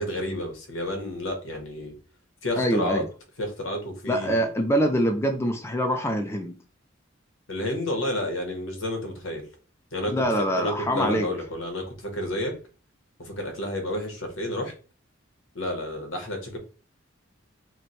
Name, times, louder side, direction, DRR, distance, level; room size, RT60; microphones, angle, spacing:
voice 1, 0.0-1.9 2.4-3.0 3.4-4.4 7.5-9.4 9.9-10.2 10.6-12.5 13.2-14.7 15.5-16.6, left 1 dB, 80° left, 4 dB, 1.0 m, -30 dB
voice 2, 2.6-3.1 4.1-6.5 10.1-11.3, equal, 15° left, 4 dB, 0.3 m, -24 dB
3.1 x 2.2 x 4.0 m, 0.37 s
head